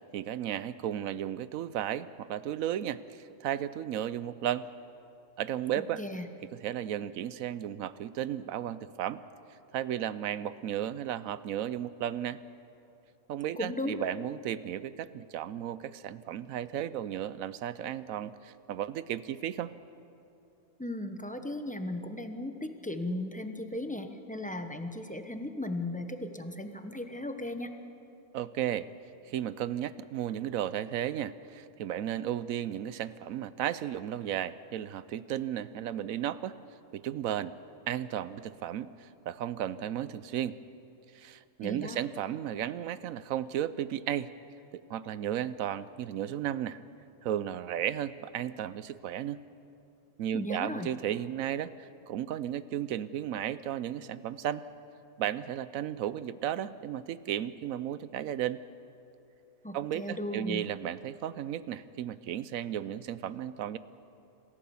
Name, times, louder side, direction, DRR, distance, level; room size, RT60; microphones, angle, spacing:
voice 1, 0.1-4.7 5.4-6.0 6.5-9.2 9.7-12.4 13.3-19.7 28.3-28.9 29.3-36.6 36.9-37.6 37.9-40.6 41.1-44.3 44.9-46.8 47.2-49.4 50.2-54.6 55.2-58.6 59.7-63.8, right 10 dB, 85° right, 16 dB, 1.1 m, -34 dB
voice 2, 5.8-6.3 13.6-14.1 20.8-27.8 41.6-42.0 50.3-50.9 59.6-60.7, left 1 dB, 5° left, 7 dB, 0.9 m, -36 dB
27.0 x 15.0 x 7.1 m, 2.7 s
omnidirectional pair, 1.4 m